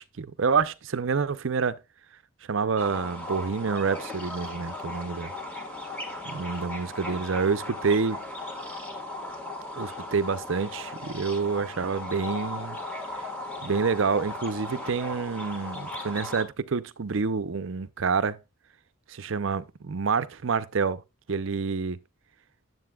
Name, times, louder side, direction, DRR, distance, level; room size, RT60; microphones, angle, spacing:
voice 1, 0.0-1.8 2.5-5.3 6.3-8.2 9.8-12.8 13.6-18.4 19.1-21.0 21.3-22.0, right 5 dB, 65° right, 0.5 m, -28 dB
sound 1, 2.8-16.4, left 2 dB, 10° left, 1.5 m, -37 dB
9.6 x 7.7 x 2.3 m
head